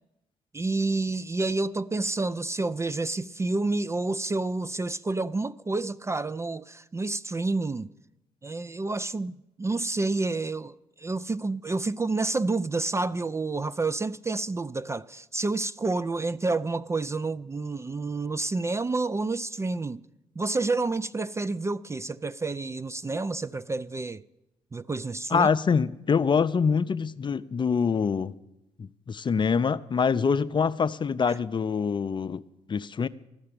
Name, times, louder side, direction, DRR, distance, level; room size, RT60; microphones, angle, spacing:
voice 1, 0.5-7.9 8.4-20.0 20.4-24.2 24.7-25.5 31.3-31.4, right 3 dB, 20° right, 0.4 m, -29 dB
voice 2, 25.3-28.3 28.8-32.4 32.7-33.1, left 6 dB, 35° left, 0.5 m, -25 dB
13.0 x 6.6 x 8.7 m
hypercardioid pair, 45°, 15 cm